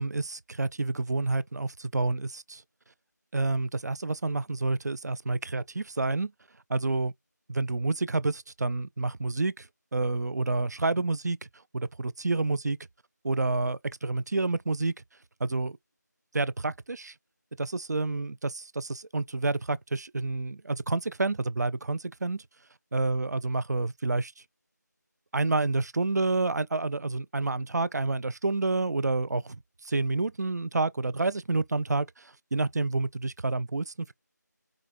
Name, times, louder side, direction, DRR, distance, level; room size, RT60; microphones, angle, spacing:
voice 1, 0.0-2.6 3.3-6.3 6.7-7.1 7.5-9.7 9.9-11.4 11.7-12.8 13.2-14.9 15.4-15.8 16.3-17.1 17.6-22.4 22.9-24.3 25.3-29.6 29.8-34.1, right 3 dB, 60° right, 0.4 m, -29 dB
5.0 x 2.3 x 3.7 m
figure-of-eight pair, 170°, 10 cm